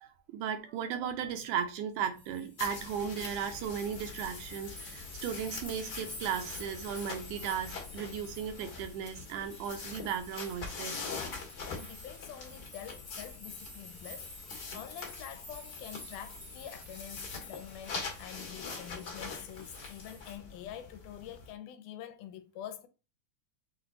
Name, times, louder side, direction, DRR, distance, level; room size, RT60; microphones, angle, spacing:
voice 1, 0.0-11.0, right 8 dB, 80° right, 2.0 m, -36 dB
sound 1, 2.2-20.4, left 2 dB, 20° left, 0.8 m, -50 dB
sound 2, 2.6-21.5, left 4 dB, 50° left, 1.3 m, -44 dB
voice 2, 11.7-22.9, left 10 dB, 80° left, 2.0 m, -46 dB
5.9 x 2.2 x 3.8 m
omnidirectional pair, 3.7 m